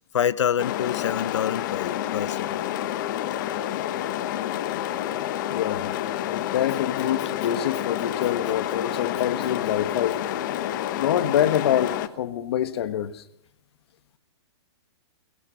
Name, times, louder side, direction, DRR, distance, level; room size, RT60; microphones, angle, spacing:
voice 1, 0.0-2.5 7.2-7.3, left 9 dB, 85° left, 0.8 m, -27 dB
sound 1, 0.6-12.1, left 13 dB, 45° left, 1.0 m, -29 dB
sound 2, 1.8-11.9, right 14 dB, 35° right, 5.2 m, -45 dB
voice 2, 5.5-5.9 6.3-10.2 11.0-13.2, left 10 dB, 60° left, 1.4 m, -26 dB
22.5 x 16.5 x 6.9 m
hypercardioid pair, 155°, 15 cm